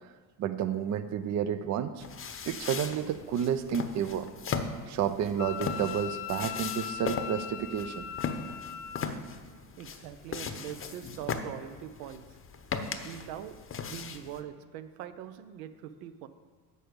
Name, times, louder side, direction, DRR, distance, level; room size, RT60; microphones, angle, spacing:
voice 1, 0.4-2.0 2.5-4.3 4.9-8.1, right 9 dB, 35° right, 11 dB, 0.5 m, -31 dB
sound 1, 2.0-14.4, left 5 dB, 25° left, 0.8 m, -38 dB
Wind instrument woodwind instrument, 5.4-9.1, left 10 dB, 70° left, 0.6 m, -39 dB
voice 2, 9.8-12.4 12.7-13.6 13.9-16.3, right 10 dB, 70° right, 11 dB, 0.8 m, -43 dB
8.0 x 6.5 x 5.1 m, 1.5 s
hypercardioid pair, 75°, 48 cm